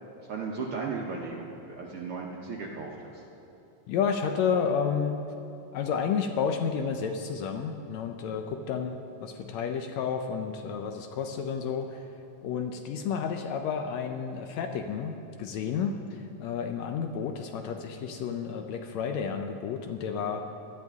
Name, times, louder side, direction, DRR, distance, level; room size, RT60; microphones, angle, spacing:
voice 1, 0.3-3.2, right 4 dB, 70° right, -1 dB, 1.3 m, -36 dB
voice 2, 3.9-5.2 5.7-12.1 12.4-20.4, left 6 dB, 75° left, 5 dB, 1.7 m, -31 dB
18.5 x 12.0 x 3.5 m, 2.8 s
omnidirectional pair, 3.5 m